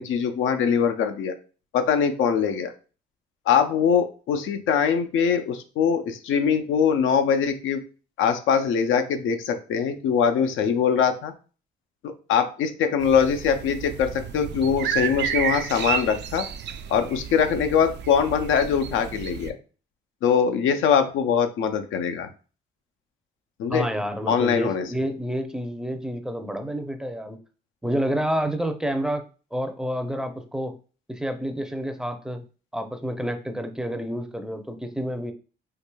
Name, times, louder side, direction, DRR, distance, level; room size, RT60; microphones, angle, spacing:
voice 1, 0.0-1.3 1.7-2.7 3.5-7.8 8.2-11.3 12.0-16.5 16.9-19.5 20.2-22.3 23.6-23.9 24.3-24.9, left 7 dB, 80° left, 7 dB, 0.6 m, -22 dB
sound 1, 13.0-19.5, right 9 dB, 60° right, 0.4 m, -31 dB
voice 2, 23.7-27.4 27.8-29.2 29.5-30.8 31.1-32.4 32.7-35.3, equal, 5° right, 6 dB, 0.5 m, -29 dB
4.7 x 2.6 x 2.2 m, 0.36 s
cardioid pair, 90°, 20 cm